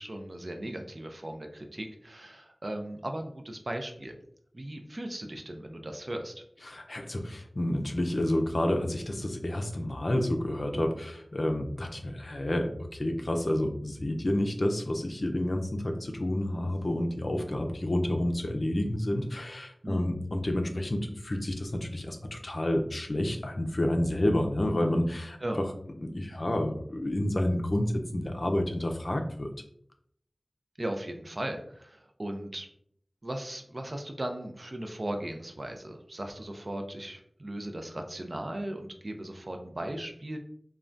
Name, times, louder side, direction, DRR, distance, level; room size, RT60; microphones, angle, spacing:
voice 1, 0.0-4.1 4.5-6.4 19.8-20.1 25.4-25.6 30.8-32.7 33.2-40.4, right 1 dB, 50° right, 4 dB, 0.4 m, -37 dB
voice 2, 6.7-25.4 26.0-29.5, left 1 dB, 55° left, 4 dB, 0.4 m, -29 dB
3.3 x 2.2 x 2.5 m, 0.66 s
wide cardioid pair, 55°, 0 cm